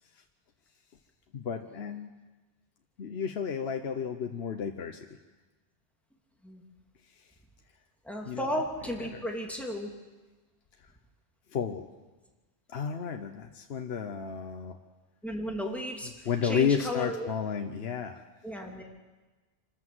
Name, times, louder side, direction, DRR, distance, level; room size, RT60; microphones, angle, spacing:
voice 1, 1.3-2.1 3.0-5.0 8.3-8.5 9.1-9.2 11.5-11.9 12.7-14.8 16.3-18.2, left 7 dB, 70° left, 5 dB, 1.2 m, -32 dB
voice 2, 8.0-9.9 15.2-17.3 18.4-18.8, equal, ahead, -1 dB, 2.8 m, -34 dB
25.5 x 13.5 x 7.9 m, 1.2 s
omnidirectional pair, 1.1 m